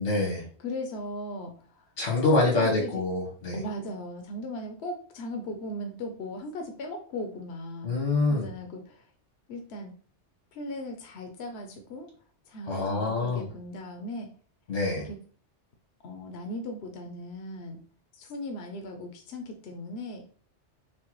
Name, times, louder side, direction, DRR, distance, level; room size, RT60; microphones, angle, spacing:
voice 1, 0.0-0.4 2.0-3.6 7.8-8.5 12.7-13.5 14.7-15.1, left 2 dB, 85° left, -2 dB, 1.8 m, -26 dB
voice 2, 0.6-1.9 2.2-2.9 3.5-9.1 9.5-9.9 10.5-12.1 12.5-14.3 15.0-15.2 16.0-17.8 18.1-20.3, left 1 dB, 65° left, 3 dB, 0.9 m, -37 dB
6.3 x 2.2 x 3.0 m, 0.44 s
omnidirectional pair, 1.2 m